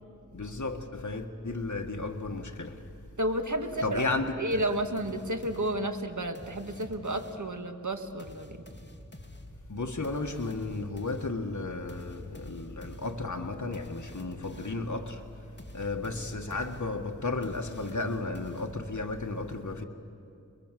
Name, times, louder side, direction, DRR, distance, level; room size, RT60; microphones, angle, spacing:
voice 1, 0.3-2.9 3.8-4.6 9.7-19.8, left 3 dB, 60° left, 1.5 m, -34 dB
voice 2, 3.2-4.0 4.4-8.6, right 1 dB, 65° right, 1.9 m, -31 dB
sound 1, 4.5-7.6 8.2-14.9 15.6-19.1, equal, 35° left, 2.6 m, -49 dB
28.0 x 22.0 x 7.5 m
wide cardioid pair, 40°, 32 cm